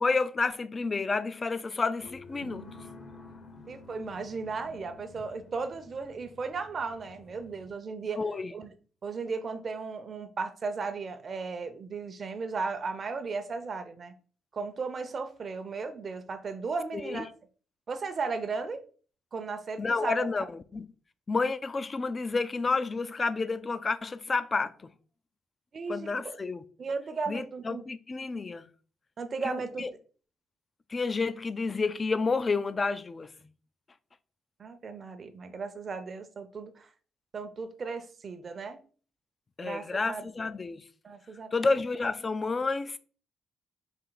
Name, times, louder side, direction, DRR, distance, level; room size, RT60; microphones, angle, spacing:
voice 1, 0.0-2.7 8.2-8.5 16.9-17.3 19.8-20.9 21.3-24.9 25.9-26.6 27.3-28.7 29.4-29.9 30.9-33.3 39.6-40.8 41.5-43.0, left 4 dB, 30° left, 0.3 m, -30 dB
sound 1, 2.0-7.7, left 3 dB, 50° left, 0.9 m, -50 dB
voice 2, 3.7-8.2 8.5-8.7 9.0-14.1 14.5-17.3 17.9-18.8 19.3-20.3 25.7-26.4 26.8-27.8 29.2-29.8 34.6-36.9 37.3-38.8 39.6-40.5 41.0-41.5, right 4 dB, 45° right, 0.6 m, -35 dB
4.5 x 2.8 x 3.8 m
cardioid pair, 90°, 0 cm